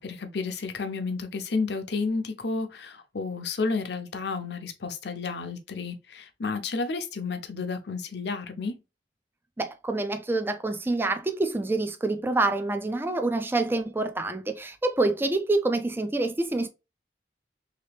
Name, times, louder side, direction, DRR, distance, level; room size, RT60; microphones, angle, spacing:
voice 1, 0.0-8.8, left 4 dB, 65° left, 0.6 m, -31 dB
voice 2, 9.6-16.7, right 2 dB, 10° right, 0.3 m, -27 dB
3.2 x 2.9 x 3.3 m
head